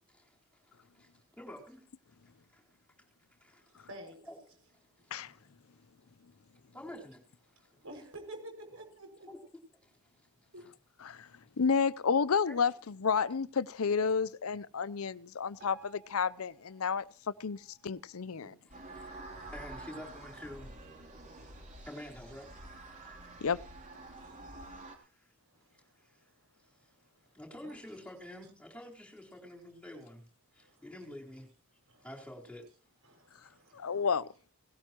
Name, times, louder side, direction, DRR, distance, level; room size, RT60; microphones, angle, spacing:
voice 1, 1.4-1.8 3.4-3.6 4.3-4.4 6.7-7.2 9.3-9.4 12.5-12.6 18.4-20.7 21.9-22.5 24.7-24.8 27.3-30.2 30.6-31.5 32.0-32.6, left 1 dB, 5° left, 4.2 m, -47 dB
voice 2, 3.9-4.2 7.8-9.5 10.5-10.6 24.2-24.7 27.6-27.8 31.9-32.1 33.0-34.0, right 1 dB, 70° right, 6.3 m, -49 dB
voice 3, 11.6-17.0 17.4-18.5 23.4-23.6 33.7-34.3, left 6 dB, 70° left, 0.6 m, -31 dB
Piano, 15.6-18.7 19.2-19.4 19.7-19.8 20.5-20.6 21.2-21.3, right 6 dB, 50° right, 6.6 m, -59 dB
sound 1, 18.7-25.0, right 2 dB, 35° right, 3.2 m, -48 dB
18.0 x 17.5 x 3.0 m
head